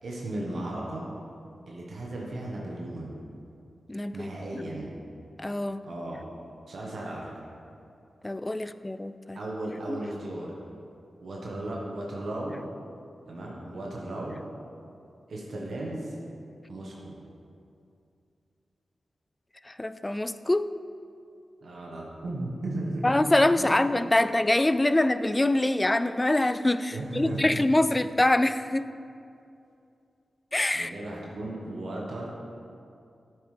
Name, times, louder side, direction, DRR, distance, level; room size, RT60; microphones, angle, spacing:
voice 1, 0.0-1.1 1.7-3.2 4.1-4.9 5.8-6.2 6.7-7.3 9.3-10.5 11.2-12.7 13.3-14.4 15.3-16.1 16.7-17.1 21.6-23.2 23.5-23.7 26.9-27.6 30.7-32.3, right 1 dB, 75° right, -3 dB, 1.3 m, -35 dB
voice 2, 3.9-4.6 5.4-5.8 8.2-9.4 9.9-10.0 19.6-20.7 23.0-28.9 30.5-30.9, left 1 dB, 20° left, 12 dB, 0.3 m, -25 dB
9.4 x 7.9 x 3.4 m, 2.5 s
cardioid pair, 55°, 0 cm